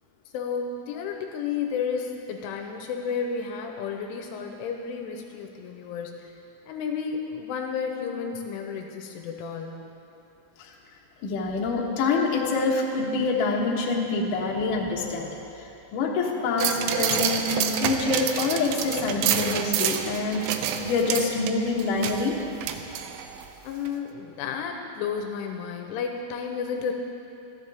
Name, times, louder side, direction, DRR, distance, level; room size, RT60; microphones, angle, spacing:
voice 1, 0.3-6.3 6.7-9.9 23.6-26.9, left 6 dB, 85° left, 3 dB, 3.2 m, -32 dB
voice 2, 11.2-15.7 15.9-20.4 20.8-22.4, left 3 dB, 65° left, -2 dB, 2.2 m, -26 dB
sound 1, 16.6-23.5 23.9-24.0, right 9 dB, 80° right, 2.9 m, -28 dB
27.0 x 10.5 x 3.6 m, 2.8 s
omnidirectional pair, 5.7 m